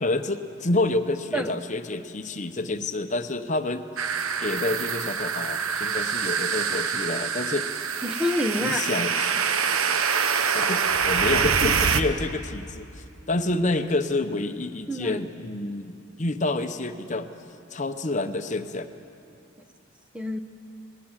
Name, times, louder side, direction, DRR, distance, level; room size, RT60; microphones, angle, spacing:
voice 1, 0.0-3.9 4.4-7.7 8.6-9.4 10.5-12.9 13.3-17.3 17.7-18.9, left 2 dB, 35° left, 8 dB, 0.8 m, -28 dB
sound 1, 4.0-12.0, right 6 dB, 90° right, 1.1 m, -25 dB
voice 2, 8.0-8.8 14.9-15.2 20.1-20.4, left 1 dB, 5° right, 5 dB, 0.8 m, -27 dB
27.5 x 20.0 x 7.3 m, 2.7 s
head